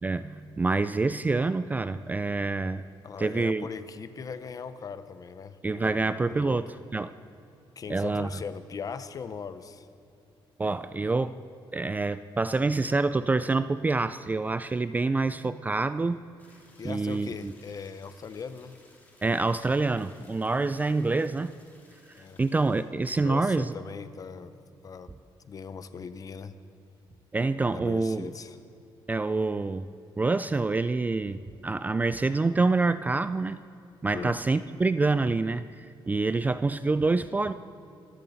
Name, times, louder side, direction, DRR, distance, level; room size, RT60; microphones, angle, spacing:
voice 1, 0.0-2.8 3.2-3.7 5.6-7.1 7.9-8.3 10.6-11.4 11.7-16.2 16.8-17.5 19.2-21.5 22.4-23.7 27.3-28.3 29.1-29.9 30.2-33.6 34.0-37.5, right 3 dB, 20° right, 13 dB, 0.3 m, -27 dB
voice 2, 3.0-6.6 7.8-9.9 16.8-18.8 22.2-22.4 23.1-24.5 24.8-25.1 25.4-26.6 27.7-28.6 34.1-34.4 36.2-36.3, left 6 dB, 40° left, 12 dB, 0.7 m, -39 dB
sound 1, 16.4-22.8, left 2 dB, 20° left, 2.7 m, -59 dB
25.0 x 14.0 x 4.1 m, 2.6 s
cardioid pair, 130°, 9 cm